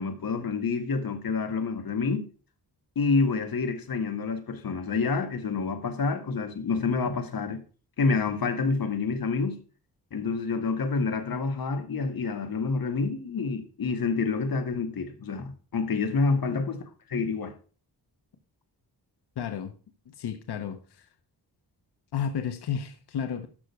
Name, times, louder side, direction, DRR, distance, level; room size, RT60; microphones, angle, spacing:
voice 1, 0.0-2.3 3.0-7.6 8.0-9.6 10.1-16.8 17.1-17.5, left 4 dB, 60° left, 1.9 m, -28 dB
voice 2, 16.3-16.6 19.4-19.7 20.2-21.1 22.1-23.5, left 7 dB, 80° left, 1.2 m, -32 dB
12.5 x 6.4 x 4.6 m
wide cardioid pair, 115°, 39 cm